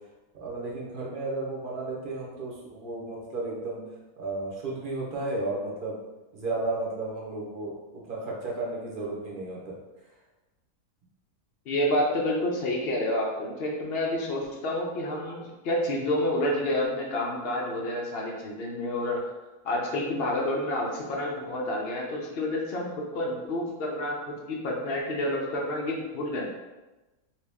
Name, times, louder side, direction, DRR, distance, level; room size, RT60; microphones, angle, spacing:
voice 1, 0.3-3.8 4.2-6.0 6.3-9.8, right 2 dB, 45° right, -3 dB, 0.7 m, -33 dB
voice 2, 11.7-19.2 19.6-22.9 23.1-24.2 24.5-26.5, left 1 dB, 65° left, -2 dB, 0.6 m, -29 dB
2.8 x 2.8 x 3.4 m, 1.1 s
omnidirectional pair, 1.6 m